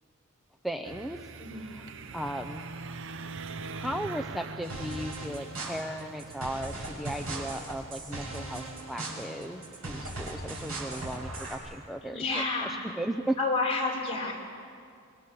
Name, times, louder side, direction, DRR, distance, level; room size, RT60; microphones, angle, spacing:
voice 1, 0.6-1.2 1.6-1.8 2.1-2.6 3.7-12.3 12.6-13.4, right 1 dB, ahead, 5 dB, 0.6 m, -36 dB
sound 1, 0.8-13.4, right 3 dB, 65° right, 0.8 m, -45 dB
voice 2, 1.4-1.7 12.0-12.9 13.4-14.3, left 3 dB, 30° left, -3 dB, 5.3 m, -30 dB
sound 2, 4.6-10.1, equal, 45° right, 7.4 m, -54 dB
sound 3, 4.7-11.5, right 2 dB, 80° right, 7.1 m, -39 dB
26.0 x 23.5 x 7.1 m, 2.3 s
head